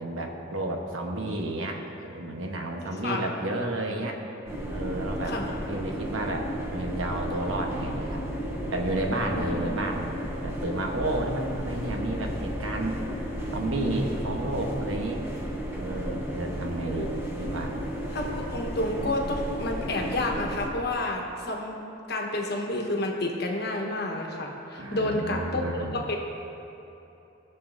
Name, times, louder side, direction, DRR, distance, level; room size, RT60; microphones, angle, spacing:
voice 1, 0.0-1.8 2.1-4.2 4.7-8.2 8.7-10.1 10.4-13.0 13.5-15.2 15.7-17.8 24.8-26.0, right 1 dB, 80° right, 1 dB, 1.1 m, -31 dB
sound 1, 4.5-20.7, equal, 15° right, 1.0 m, -33 dB
voice 2, 18.1-26.2, left 1 dB, 55° left, 1 dB, 1.2 m, -30 dB
19.0 x 6.9 x 2.6 m, 2.9 s
head